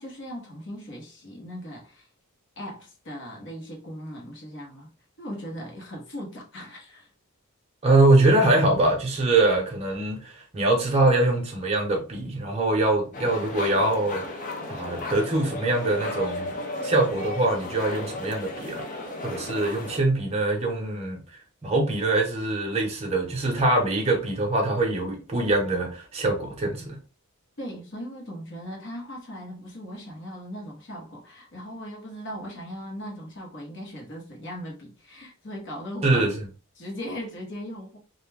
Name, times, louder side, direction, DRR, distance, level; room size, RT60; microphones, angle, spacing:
voice 1, 0.0-2.1 2.6-4.9 5.2-7.1 27.6-36.2 36.8-38.0, equal, 55° left, 1.0 m, -38 dB
voice 2, 7.8-14.2 14.7-16.5 16.8-18.9 19.2-21.2 21.6-27.0 36.0-36.3, right 2 dB, 30° right, 0.7 m, -23 dB
sound 1, 13.1-20.0, left 2 dB, 40° left, 0.5 m, -34 dB
2.4 x 2.2 x 3.2 m
head